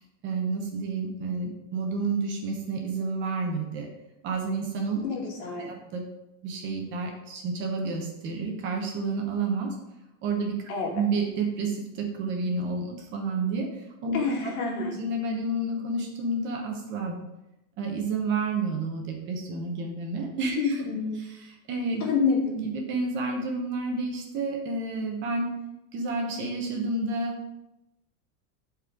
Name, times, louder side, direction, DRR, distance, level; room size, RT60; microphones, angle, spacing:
voice 1, 0.2-3.9 4.2-5.0 5.6-6.0 6.4-9.7 10.2-10.6 10.9-13.7 14.0-14.2 14.4-14.5 14.8-17.2 17.8-20.8 21.7-22.0 22.5-25.5 25.9-27.6, right 3 dB, 25° right, 1 dB, 1.0 m, -30 dB
voice 2, 5.0-5.7 10.7-11.0 14.1-15.0 20.6-21.2 22.0-22.6, left 5 dB, 75° left, 0 dB, 2.3 m, -27 dB
11.5 x 4.5 x 3.8 m, 0.92 s
supercardioid pair, 175°, 45 cm